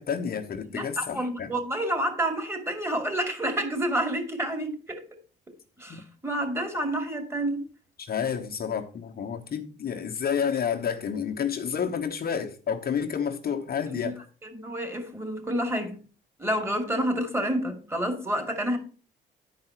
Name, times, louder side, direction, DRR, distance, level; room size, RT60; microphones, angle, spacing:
voice 1, 0.0-1.5 5.9-6.0 8.0-14.2, left 7 dB, 50° left, 1.0 m, -30 dB
voice 2, 0.6-5.0 5.8-7.7 13.9-14.1 14.4-16.0 16.4-18.8, right 1 dB, 15° right, 2.3 m, -29 dB
10.5 x 4.8 x 4.4 m
cardioid pair, 90°, 20 cm